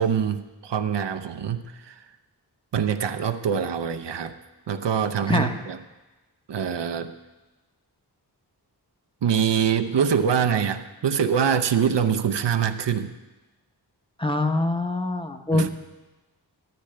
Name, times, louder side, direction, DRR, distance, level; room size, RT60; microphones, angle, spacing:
voice 1, 0.0-2.0 2.7-4.3 4.7-5.8 6.5-7.1 9.2-13.1 15.5-15.7, right 7 dB, 80° right, 7 dB, 0.7 m, -24 dB
voice 2, 5.3-5.6 14.2-15.7, left 2 dB, 15° left, 5 dB, 0.8 m, -24 dB
13.5 x 13.0 x 3.3 m, 1.1 s
wide cardioid pair, 85°, 41 cm